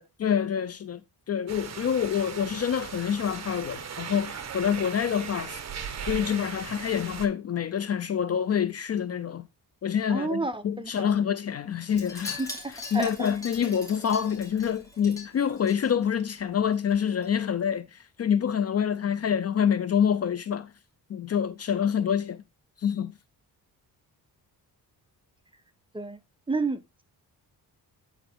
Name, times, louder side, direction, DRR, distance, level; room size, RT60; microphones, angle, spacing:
voice 1, 0.2-1.0 1.3-5.6 6.1-9.5 9.8-12.4 12.7-20.7 21.1-22.4 22.8-23.1, left 8 dB, 40° left, 0.5 m, -27 dB
sound 1, 1.5-7.3, right 7 dB, 40° right, 1.1 m, -38 dB
voice 2, 10.1-11.1 12.9-13.1 25.9-26.2 26.5-27.0, right 3 dB, 15° right, 0.7 m, -30 dB
Wind chime, 11.9-16.4 16.7-17.0 17.2-17.3, left 2 dB, 10° left, 3.3 m, -41 dB
9.2 x 4.7 x 3.5 m
cardioid pair, 100°, 38 cm